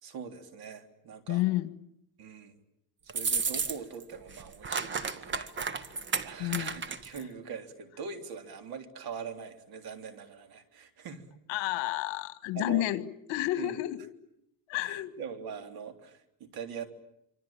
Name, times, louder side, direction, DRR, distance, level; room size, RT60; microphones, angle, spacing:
voice 1, 0.0-1.4 2.2-2.6 3.0-5.5 6.2-11.3 12.5-12.9 13.6-13.8 14.8-16.9, right 6 dB, 50° right, 7 dB, 3.6 m, -42 dB
voice 2, 1.3-1.7 6.4-6.8 11.5-14.1 14.7-15.1, left 16 dB, 70° left, 13 dB, 1.9 m, -30 dB
sound 1, 3.1-4.0 4.3-7.2, right 5 dB, 25° right, 1.5 m, -32 dB
26.0 x 25.5 x 8.9 m, 0.80 s
cardioid pair, 145°, 46 cm